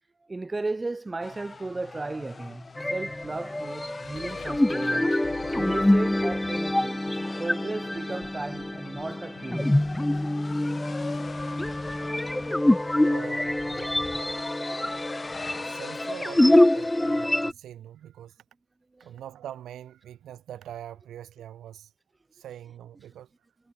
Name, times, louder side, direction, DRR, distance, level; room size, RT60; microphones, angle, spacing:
voice 1, 0.3-2.6 2.9-5.3 5.5-7.0 7.4-9.8 14.3-14.6 19.0-19.1, right 3 dB, 20° right, 1.4 m, -35 dB
sound 1, 1.2-17.5, left 4 dB, 30° left, 3.7 m, -42 dB
sound 2, 2.8-17.5, left 1 dB, 10° left, 1.2 m, -25 dB
sound 3, 4.0-13.2, left 8 dB, 55° left, 4.0 m, -49 dB
voice 2, 13.0-14.1 15.6-18.3 19.0-21.9 22.3-23.3, right 11 dB, 60° right, 2.6 m, -43 dB
hypercardioid pair, 45°, 0 cm